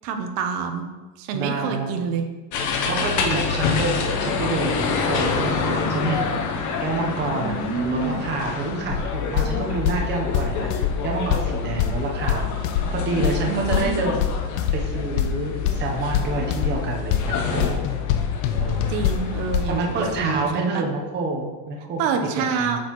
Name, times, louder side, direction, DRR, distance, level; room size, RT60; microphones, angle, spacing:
voice 1, 0.0-0.9 1.2-2.2 7.4-8.2 13.5-14.1 18.9-20.8 22.0-22.8, right 6 dB, 65° right, 5 dB, 0.9 m, -27 dB
voice 2, 1.3-2.0 2.9-6.5 6.8-14.2 14.7-17.8 18.5-19.0 19.7-22.0 22.4-22.8, right 3 dB, 20° right, 0 dB, 0.8 m, -28 dB
sound 1, 2.5-20.4, left 5 dB, 35° left, 0.8 m, -28 dB
sound 2, 8.9-19.8, left 9 dB, 70° left, 0.8 m, -26 dB
8.4 x 6.3 x 3.1 m, 1.2 s
cardioid pair, 170°, 50 cm